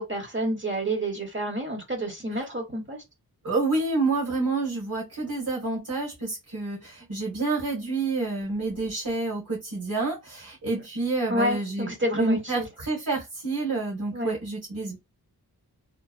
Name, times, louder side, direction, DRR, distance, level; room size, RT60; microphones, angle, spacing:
voice 1, 0.0-3.0 11.3-12.6 14.1-14.3, right 1 dB, 30° right, 1.0 m, -29 dB
voice 2, 3.4-6.8 7.1-15.0, right 3 dB, 60° right, 1.5 m, -28 dB
3.1 x 2.1 x 2.4 m
cardioid pair, 45°, 38 cm